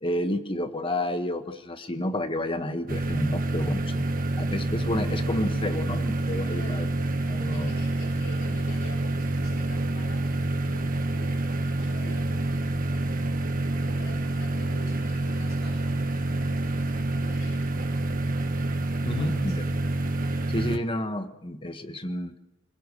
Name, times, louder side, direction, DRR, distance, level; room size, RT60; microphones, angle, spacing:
voice 1, 0.0-4.0 4.4-6.9 7.3-7.7 19.0-19.6 20.5-22.3, left 1 dB, 25° left, 8 dB, 1.4 m, -30 dB
sound 1, 2.9-20.8, right 2 dB, 45° right, 1.5 m, -27 dB
voice 2, 6.5-6.9 7.3-13.0 13.7-16.8 17.2-17.6 19.1-19.6, left 1 dB, 75° left, -1 dB, 4.1 m, -47 dB
26.0 x 17.0 x 6.7 m, 0.88 s
head